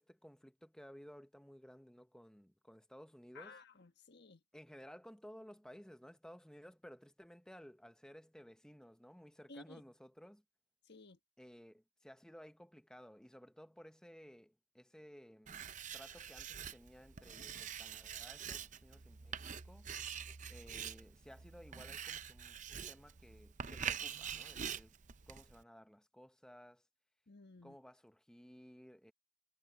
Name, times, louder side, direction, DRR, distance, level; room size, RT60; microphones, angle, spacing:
voice 1, 0.0-3.6 4.5-10.4 11.4-15.7 15.9-19.9 20.5-24.9 25.3-26.8 27.6-29.1, equal, 5° left, 0.8 m, -57 dB
voice 2, 3.3-4.4 9.5-9.8 10.8-11.2 27.3-27.8, left 3 dB, 50° left, 1.4 m, -55 dB
Writing, 15.5-25.6, right 8 dB, 35° right, 0.6 m, -45 dB
head